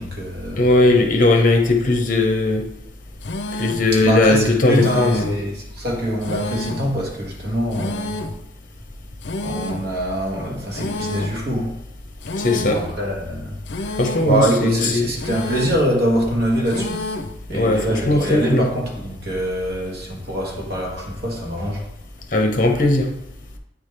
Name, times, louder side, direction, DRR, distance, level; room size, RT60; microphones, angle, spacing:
voice 1, 0.0-0.6 3.9-8.2 9.4-11.7 12.5-17.0 17.5-21.8, right 1 dB, 60° right, -2 dB, 1.6 m, -24 dB
voice 2, 0.6-2.6 3.5-5.3 12.4-12.8 14.0-15.1 17.5-18.7 22.3-23.1, left 2 dB, 45° left, 2 dB, 0.9 m, -18 dB
sound 1, 3.2-3.9 4.7-5.4 6.2-6.9 7.7-8.4 9.2-9.9 10.7-11.4 12.2-12.9 13.7-14.4 15.2-15.9 16.7-17.4, left 2 dB, 70° left, 0.5 m, -29 dB
8.8 x 3.6 x 3.3 m, 0.82 s
head